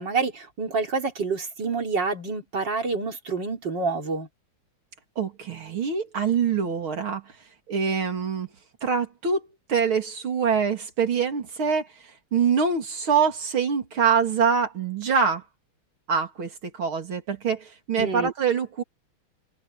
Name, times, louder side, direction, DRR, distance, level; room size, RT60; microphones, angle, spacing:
voice 1, 0.0-4.3 18.0-18.3, right 4 dB, 55° right, 3.9 m, -28 dB
voice 2, 5.2-7.2 7.7-8.5 8.8-11.9 12.3-15.4 16.1-18.8, right 6 dB, 75° right, 3.7 m, -24 dB
omnidirectional pair, 2.3 m